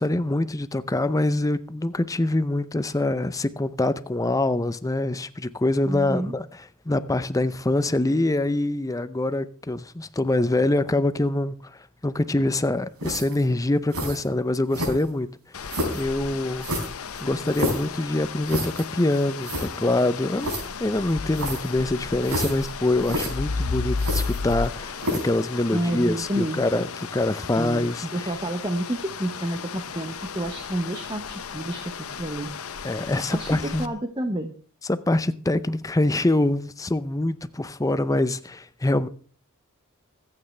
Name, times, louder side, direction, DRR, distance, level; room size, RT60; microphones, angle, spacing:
voice 1, 0.0-6.5 6.9-11.6 12.0-15.3 15.5-16.7 17.2-26.9 27.1-28.3 32.8-33.9 34.9-39.1, left 2 dB, 15° left, 0.5 m, -25 dB
voice 2, 5.9-6.3 25.7-26.7 27.6-32.5 33.3-33.5 33.8-34.5, right 1 dB, 20° right, 1.0 m, -29 dB
sound 1, 13.0-13.4 13.9-14.2 14.7-15.2 15.7-16.0 16.6-17.9 18.5-18.8 19.2-19.3 19.4-19.7 20.4-20.6 21.3-21.7 22.2-22.7 23.0-23.3 24.0-24.7 25.0-25.3, equal, 90° right, 4.5 m, -29 dB
sound 2, 15.5-33.9, left 5 dB, 70° left, 0.8 m, -34 dB
24.5 x 8.7 x 3.3 m
head